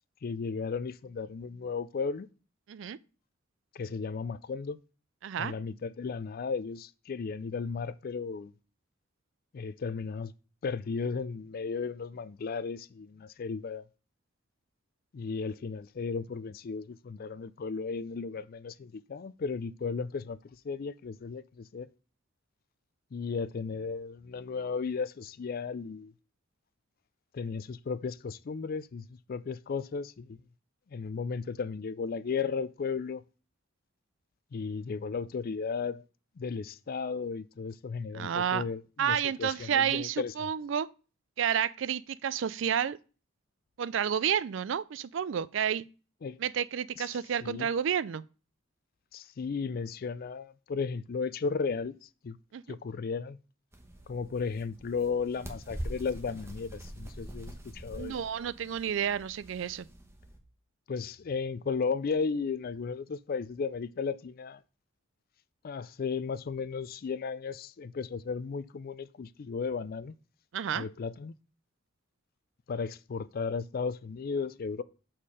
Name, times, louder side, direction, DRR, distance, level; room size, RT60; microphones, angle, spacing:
voice 1, 0.2-2.3 3.7-4.8 5.4-8.5 9.5-10.3 10.6-13.8 15.1-20.4 20.6-21.9 23.1-26.1 27.3-30.4 30.9-33.2 34.5-36.0 36.4-40.5 46.2-46.4 47.0-47.1 47.4-47.7 49.1-52.4 52.7-53.4 54.1-58.1 60.9-64.6 65.6-70.1 70.7-71.3 72.7-74.8, left 5 dB, 50° left, 0.4 m, -35 dB
voice 2, 5.2-5.5 38.1-38.6 39.0-40.9 41.4-43.0 43.8-45.8 46.4-48.2 52.5-52.8 57.9-59.9 70.5-70.9, right 8 dB, 65° right, 0.4 m, -30 dB
sound 1, 53.7-60.4, equal, 15° right, 1.0 m, -44 dB
7.3 x 4.4 x 4.8 m
head